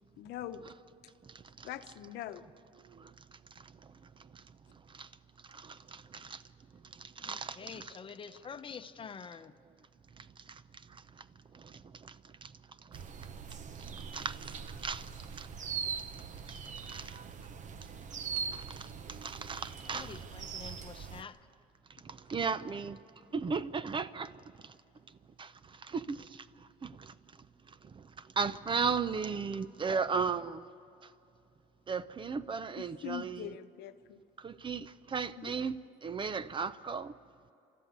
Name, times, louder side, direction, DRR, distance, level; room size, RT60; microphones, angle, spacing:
voice 1, 0.2-0.7 1.6-2.4 32.8-34.2 35.4-35.5, left 12 dB, 80° left, 0.9 m, -43 dB
voice 2, 5.5-6.4 7.0-7.9 10.5-10.6 11.5-12.2 12.4-12.5 13.8-15.1 15.4-15.5 16.9-17.2 18.5-20.2 22.0-23.0 23.3-24.3 25.4-25.5 25.8-26.4 26.8-27.1 27.9-28.0 28.4-30.6 31.9-33.5 34.4-35.8 36.0-37.1, right 5 dB, 30° right, 0.6 m, -36 dB
voice 3, 7.2-9.5 19.8-21.4, left 6 dB, 30° left, 0.9 m, -47 dB
sound 1, 12.9-21.2, right 6 dB, 45° right, 1.1 m, -42 dB
29.0 x 13.0 x 9.5 m
cardioid pair, 110°, 17 cm